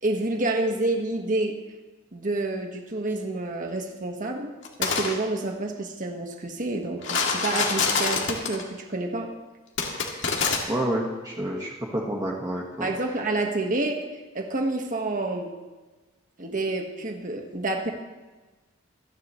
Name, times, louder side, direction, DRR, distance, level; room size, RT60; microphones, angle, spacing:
voice 1, 0.0-1.5 2.1-4.5 4.8-9.3 12.8-14.1 14.3-15.5 16.4-17.9, right 2 dB, 45° right, 2 dB, 1.6 m, -28 dB
sound 1, 4.6-5.1 7.0-8.6 9.8-10.6, left 5 dB, 70° left, 2.2 m, -25 dB
voice 2, 10.7-12.9, right 1 dB, 20° right, -3 dB, 1.6 m, -29 dB
26.0 x 10.5 x 3.2 m, 1.2 s
head